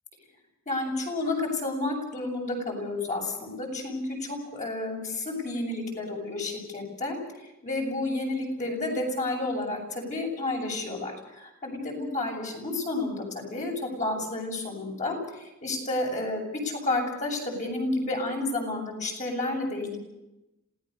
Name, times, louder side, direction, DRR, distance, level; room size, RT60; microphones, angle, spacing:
voice 1, 0.7-7.2 7.6-13.2 13.5-20.0, left 2 dB, 35° left, 0 dB, 7.6 m, -31 dB
27.0 x 18.0 x 6.8 m, 0.93 s
head